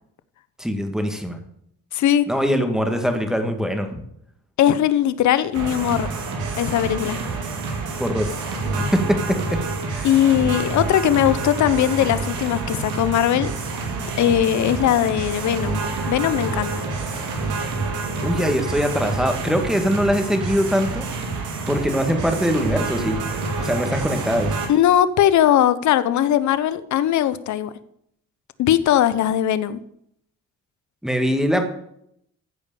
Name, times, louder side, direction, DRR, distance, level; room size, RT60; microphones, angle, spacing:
voice 1, 0.6-1.4 2.3-4.0 8.0-8.3 8.9-9.6 9.9-10.1 18.2-21.1 21.7-23.2 23.6-24.5 31.0-31.6, equal, ahead, 5 dB, 2.0 m, -22 dB
voice 2, 1.9-2.3 4.6-6.1 6.6-7.2 10.0-13.5 14.2-16.8 24.7-27.7 28.6-29.8, left 11 dB, 70° left, 15 dB, 0.8 m, -19 dB
sound 1, 5.5-24.7, right 3 dB, 85° right, 2.5 m, -28 dB
14.0 x 5.2 x 6.9 m, 0.72 s
cardioid pair, 90°, 30 cm